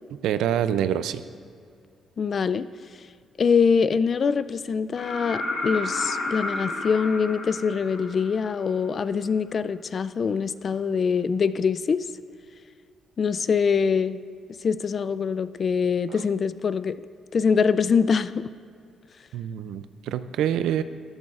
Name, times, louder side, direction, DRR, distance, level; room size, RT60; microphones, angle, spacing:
voice 1, 0.2-1.2 19.3-20.8, right 10 dB, 85° right, 13 dB, 0.4 m, -26 dB
voice 2, 2.2-2.7 3.4-12.0 13.2-14.2 14.6-17.0 17.3-18.4, left 6 dB, 45° left, 15 dB, 0.3 m, -24 dB
sound 1, 4.9-8.7 10.6-10.7, left 2 dB, 75° left, 2.7 m, -31 dB
13.5 x 11.0 x 2.4 m, 2.3 s
cardioid pair, 90°, 0 cm